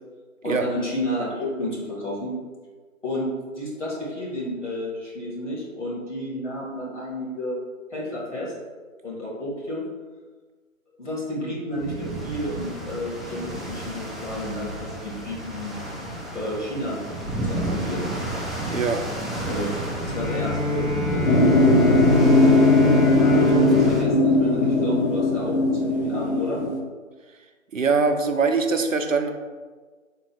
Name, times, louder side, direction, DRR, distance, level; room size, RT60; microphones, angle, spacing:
voice 1, 0.4-2.3 3.0-3.3 3.5-7.6 7.9-8.5 9.0-9.8 11.0-15.8 16.3-17.0 17.4-18.1 19.4-21.7 23.2-26.7, left 1 dB, 60° left, -5 dB, 1.4 m, -31 dB
sound 1, 11.8-24.0, right 1 dB, ahead, 0.4 m, -31 dB
voice 2, 18.7-19.0 23.5-24.0 27.7-29.3, right 4 dB, 70° right, 6 dB, 0.5 m, -23 dB
Bowed string instrument, 20.0-25.4, left 5 dB, 40° left, 0.6 m, -27 dB
sound 2, 21.3-26.8, left 1 dB, 75° left, 0.8 m, -18 dB
3.8 x 2.1 x 4.2 m, 1.4 s
figure-of-eight pair, 170°, 41 cm